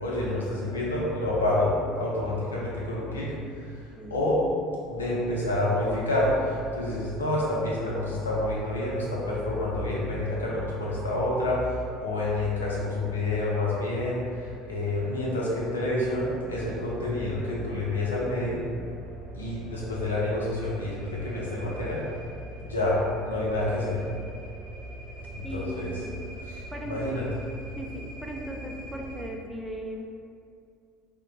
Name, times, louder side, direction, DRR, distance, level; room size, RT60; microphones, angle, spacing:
voice 1, 0.0-3.6 4.1-4.4 4.9-18.7 19.3-22.0 22.6-24.0 25.3-26.0 26.4-27.2, left 1 dB, 85° left, -5 dB, 0.5 m, -28 dB
sound 1, 16.0-29.3, right 1 dB, 55° right, 0.7 m, -42 dB
voice 2, 25.4-26.1 26.7-27.2 27.8-30.1, equal, 5° right, 0 dB, 0.4 m, -37 dB
2.9 x 2.0 x 2.7 m, 2.3 s
figure-of-eight pair, 65°, 0 cm